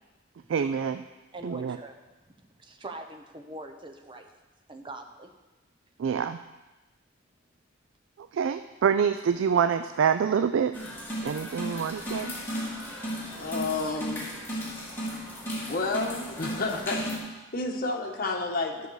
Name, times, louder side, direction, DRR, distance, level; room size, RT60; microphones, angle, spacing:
voice 1, 0.5-1.0 1.4-1.8 6.0-6.4 8.3-10.7 11.2-12.3, right 7 dB, 70° right, 10 dB, 0.3 m, -26 dB
voice 2, 1.3-2.0 2.6-4.3 4.7-5.3, right 2 dB, 25° right, 5 dB, 0.8 m, -42 dB
sound 1, 10.7-17.2, equal, 10° left, 2.2 m, -35 dB
voice 3, 13.4-14.6 15.6-18.9, left 3 dB, 45° left, 2 dB, 1.2 m, -31 dB
12.0 x 6.5 x 4.7 m, 1.2 s
head